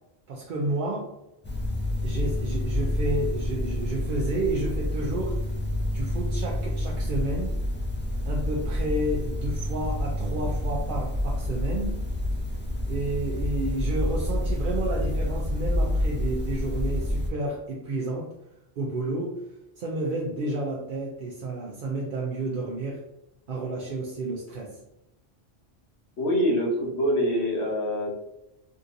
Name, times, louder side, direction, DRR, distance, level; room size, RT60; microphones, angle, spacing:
voice 1, 0.3-1.1 2.0-5.4 5.8-7.5 8.3-12.0 12.9-18.3 18.8-19.4 19.8-23.0 23.5-24.8, right 2 dB, 60° right, -2 dB, 0.7 m, -31 dB
sound 1, 1.4-17.3, left 1 dB, 15° left, 0.5 m, -28 dB
voice 2, 26.2-28.1, equal, 90° left, -1 dB, 1.2 m, -25 dB
3.6 x 2.7 x 2.5 m, 0.90 s
omnidirectional pair, 1.1 m